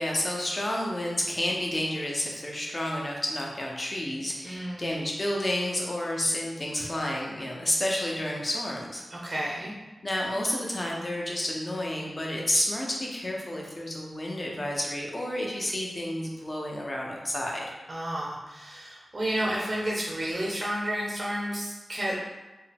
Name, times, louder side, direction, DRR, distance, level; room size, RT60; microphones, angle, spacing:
voice 1, 0.0-9.0 10.0-17.6, left 1 dB, 30° left, -2 dB, 0.8 m, -30 dB
voice 2, 4.4-5.1 9.1-9.7 17.9-22.2, right 1 dB, 40° right, -5 dB, 0.8 m, -31 dB
4.5 x 2.2 x 3.4 m, 1.1 s
wide cardioid pair, 85°, 0 cm